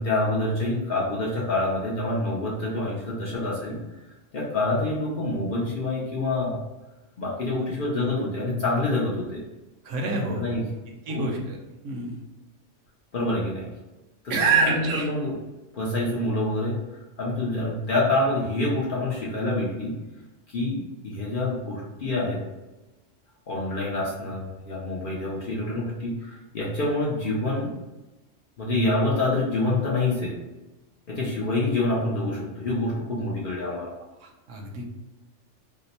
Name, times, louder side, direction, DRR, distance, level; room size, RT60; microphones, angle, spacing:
voice 1, 0.0-4.0 4.3-6.6 7.2-9.4 10.3-10.6 11.1-11.3 13.1-13.7 14.2-15.4 15.7-20.0 20.5-22.4 23.5-27.7 28.6-30.4 31.1-33.9, left 2 dB, 55° left, -5 dB, 0.7 m, -27 dB
voice 2, 9.8-10.5 11.1-11.6 11.8-12.2 14.3-15.1 34.2-34.9, right 3 dB, 85° right, 1 dB, 1.0 m, -26 dB
2.9 x 2.0 x 4.0 m, 1.1 s
omnidirectional pair, 1.3 m